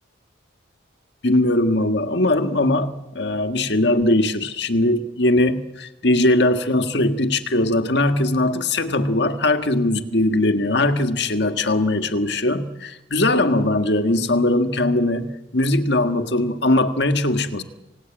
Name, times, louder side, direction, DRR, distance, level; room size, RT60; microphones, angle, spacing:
voice 1, 1.2-17.6, left 1 dB, 60° left, 8 dB, 1.7 m, -20 dB
28.0 x 18.0 x 8.8 m, 0.97 s
head